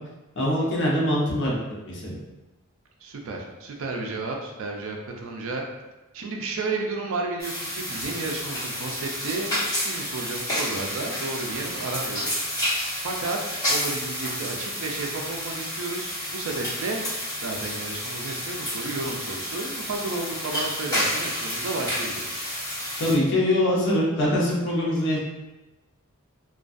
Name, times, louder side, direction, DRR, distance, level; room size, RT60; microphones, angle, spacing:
voice 1, 0.4-1.6 1.8-2.2 23.0-25.2, left 1 dB, 55° left, -4 dB, 0.7 m, -23 dB
voice 2, 3.0-5.6 6.1-12.4 13.0-17.0 17.4-22.4, right 3 dB, 65° right, 1 dB, 0.4 m, -32 dB
sound 1, 7.4-23.1, equal, 15° left, 1.1 m, -30 dB
2.4 x 2.2 x 2.4 m, 1.0 s
head